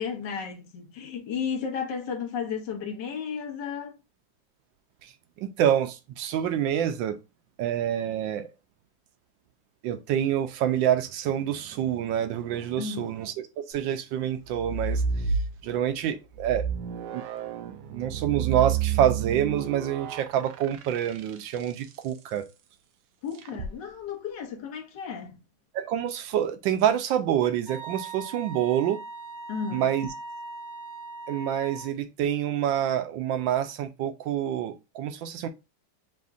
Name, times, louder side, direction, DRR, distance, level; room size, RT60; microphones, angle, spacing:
voice 1, 0.0-4.0 12.8-13.1 23.2-25.4 29.5-29.9, left 6 dB, 70° left, 1.5 m, -33 dB
voice 2, 5.4-7.2 7.6-8.5 9.8-15.0 15.6-16.7 17.1-17.2 17.9-22.5 25.7-29.0 29.7-30.1 31.3-35.5, right 10 dB, 90° right, 1.3 m, -27 dB
sound 1, 14.4-15.9 16.3-21.8 23.4-23.7, right 6 dB, 70° right, 1.0 m, -30 dB
Wind instrument woodwind instrument, 27.7-31.9, right 4 dB, 55° left, 1.5 m, -40 dB
6.9 x 2.5 x 2.4 m
omnidirectional pair, 2.0 m